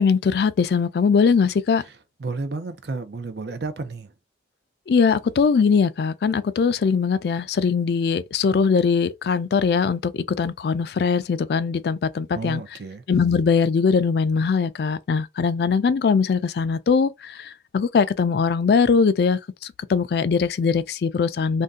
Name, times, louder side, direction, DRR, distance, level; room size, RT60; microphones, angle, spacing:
voice 1, 0.0-1.8 4.9-12.6 13.1-19.4 19.9-21.6, left 5 dB, 60° left, 0.3 m, -21 dB
voice 2, 2.2-4.1 12.3-13.0, right 3 dB, 65° right, 0.5 m, -31 dB
2.6 x 2.2 x 3.5 m
head